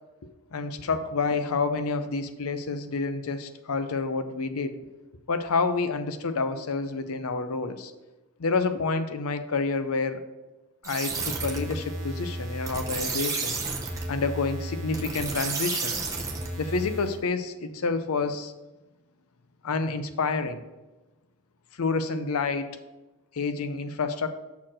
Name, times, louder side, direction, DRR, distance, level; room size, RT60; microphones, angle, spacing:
voice 1, 0.2-4.8 5.3-7.9 8.4-10.2 10.8-13.6 14.1-15.9 16.6-18.5 19.6-20.6 21.8-22.8 23.3-24.3, left 4 dB, 75° left, 10 dB, 0.6 m, -28 dB
sound 1, 10.8-17.2, right 3 dB, 15° right, 0.8 m, -32 dB
5.8 x 4.4 x 6.2 m, 1.1 s
head